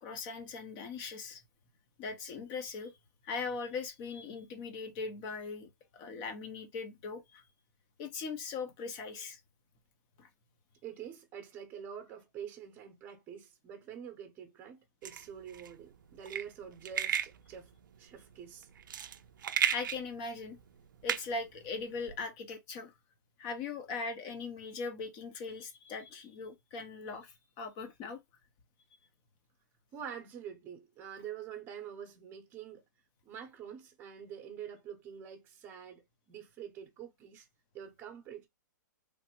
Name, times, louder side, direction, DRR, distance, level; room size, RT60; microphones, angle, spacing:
voice 1, 0.0-1.4 2.0-2.9 3.2-7.4 8.0-9.4 10.2-10.3 19.7-20.6 21.0-22.9 23.4-28.2, left 4 dB, 30° left, 0.6 m, -40 dB
voice 2, 10.8-17.7 18.0-18.7 29.9-32.8 33.2-37.5 37.7-38.5, right 8 dB, 20° right, 0.8 m, -46 dB
sound 1, 15.0-22.2, right 9 dB, 90° right, 0.4 m, -36 dB
3.2 x 2.0 x 2.9 m
hypercardioid pair, 155°, 10 cm